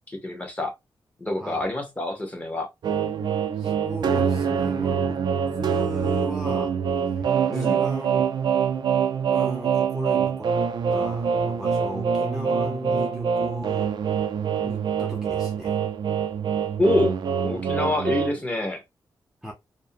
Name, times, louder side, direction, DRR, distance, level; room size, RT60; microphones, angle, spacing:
voice 1, 0.1-0.7 1.2-2.7 7.5-7.8 16.8-18.8, left 1 dB, 15° left, 0.8 m, -26 dB
sound 1, 2.8-18.3, right 7 dB, 65° right, 0.4 m, -25 dB
voice 2, 3.6-8.3 9.3-10.5 10.9-13.9 14.3-15.8 19.4-19.5, right 1 dB, 5° right, 0.4 m, -36 dB
2.6 x 2.0 x 2.6 m
wide cardioid pair, 120°, 8 cm